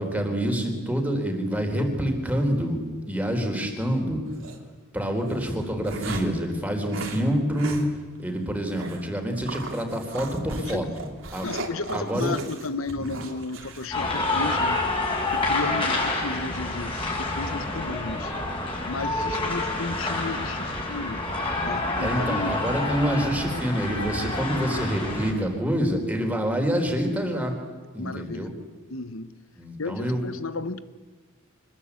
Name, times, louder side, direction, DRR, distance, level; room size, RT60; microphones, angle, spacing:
voice 1, 0.0-2.8 3.1-4.2 4.9-7.8 8.2-11.5 11.9-12.4 22.0-27.5 27.9-28.5 29.6-30.3, equal, 5° right, 3 dB, 4.1 m, -27 dB
sound 1, 4.3-4.6 5.3-6.4 6.9-7.2 7.6-7.9 8.2-8.3 8.7-9.0 9.5-14.8, right 2 dB, 65° right, 3.2 m, -37 dB
voice 2, 11.4-14.9 15.3-18.3 18.8-21.2 21.6-22.6 24.7-24.9 28.0-28.5 28.9-29.3 29.8-30.8, left 3 dB, 75° left, 14 dB, 1.2 m, -33 dB
sound 2, 13.9-25.3, left 2 dB, 25° left, 6.5 m, -28 dB
25.0 x 21.0 x 8.5 m, 1.4 s
head